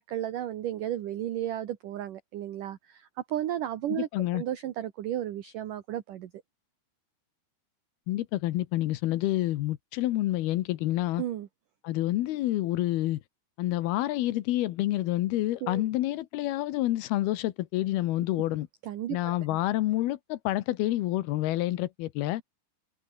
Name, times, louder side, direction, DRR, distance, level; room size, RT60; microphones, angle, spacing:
voice 1, 0.0-4.1 4.3-6.3 11.2-11.5 15.6-15.8 18.8-19.4, right 12 dB, 65° right, 2.4 m, -33 dB
voice 2, 3.9-4.4 8.1-11.2 11.8-13.2 13.6-18.7 19.1-22.4, left 15 dB, 70° left, 2.7 m, -28 dB
omnidirectional pair, 5.2 m